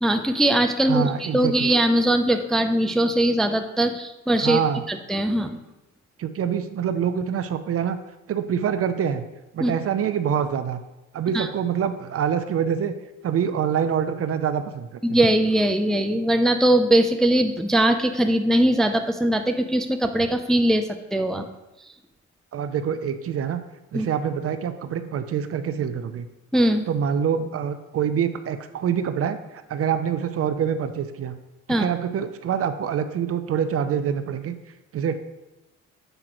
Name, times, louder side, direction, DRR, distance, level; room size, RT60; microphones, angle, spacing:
voice 1, 0.0-4.6 4.9-5.6 9.6-9.7 11.3-11.5 15.0-20.8 21.1-21.5 23.9-24.1 26.5-26.9 31.7-31.9, right 1 dB, ahead, 6 dB, 0.4 m, -21 dB
voice 2, 0.9-1.7 4.4-4.8 6.2-8.0 8.3-9.2 9.5-10.8 11.1-12.9 13.2-15.2 22.5-23.6 23.9-26.3 26.9-31.4 31.8-34.6 34.9-35.2, right 8 dB, 50° right, 10 dB, 0.5 m, -25 dB
7.8 x 4.9 x 3.0 m, 0.99 s
cardioid pair, 90°, 30 cm